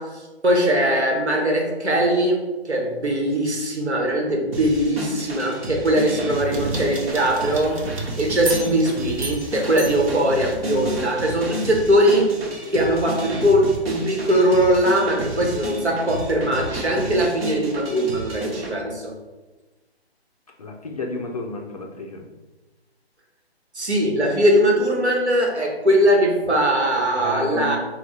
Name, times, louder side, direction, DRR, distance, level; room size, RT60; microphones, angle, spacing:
voice 1, 0.0-7.9 8.2-12.3 12.7-19.2 23.7-27.8, equal, 85° right, -1 dB, 1.1 m, -20 dB
sound 1, 4.5-18.7, right 1 dB, 65° right, 0.8 m, -32 dB
sound 2, 6.3-10.9, right 3 dB, 30° right, 0.5 m, -35 dB
voice 2, 20.6-22.3 27.2-27.8, left 2 dB, 35° left, 1 dB, 0.4 m, -31 dB
3.5 x 2.3 x 4.1 m, 1.2 s
figure-of-eight pair, 135°, 33 cm